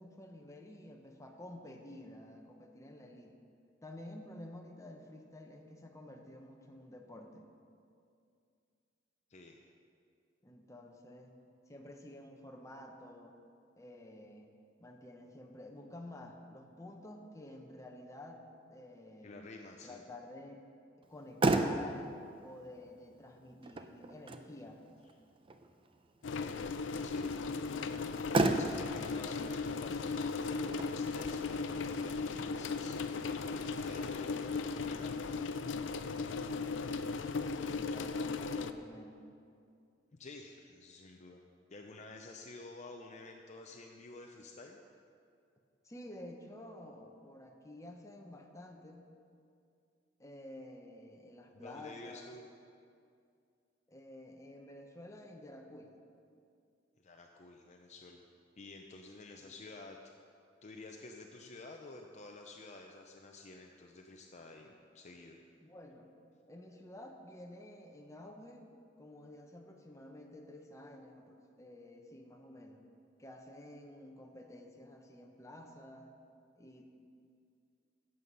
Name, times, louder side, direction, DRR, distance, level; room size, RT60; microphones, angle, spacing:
voice 1, 0.0-3.4 3.8-7.5 10.4-11.3 11.7-13.3 13.8-19.5 19.8-20.6 21.0-22.1 22.4-24.8 37.1-39.3 45.8-49.0 50.2-52.3 53.9-55.9 59.4-59.5 65.6-66.1 66.5-68.7 69.0-72.9 73.2-76.1 76.6-76.9, left 1 dB, 15° left, 2 dB, 1.0 m, -51 dB
voice 2, 19.2-20.0 26.3-27.3 28.6-35.4 40.1-41.4 41.7-44.8 51.5-52.4 57.0-58.2 58.6-60.0 60.6-65.4, left 2 dB, 40° left, 2 dB, 0.6 m, -51 dB
Motor vehicle (road), 21.0-34.0, right 2 dB, 30° right, 0.5 m, -37 dB
sound 1, 26.2-38.7, left 4 dB, 85° left, 0.5 m, -37 dB
12.5 x 7.8 x 5.4 m, 2.4 s
head